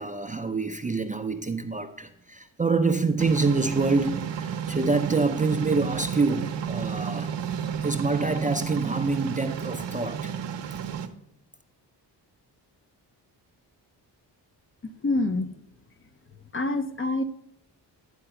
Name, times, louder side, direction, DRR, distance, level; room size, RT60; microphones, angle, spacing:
voice 1, 0.0-7.4 7.8-10.3, right 3 dB, 20° right, 6 dB, 0.5 m, -26 dB
sound 1, 3.2-11.1, right 8 dB, 70° right, 0.8 m, -32 dB
voice 2, 15.0-15.5 16.5-17.2, left 2 dB, 30° left, 10 dB, 0.6 m, -26 dB
10.0 x 3.9 x 5.7 m, 0.72 s
cardioid pair, 70°, 44 cm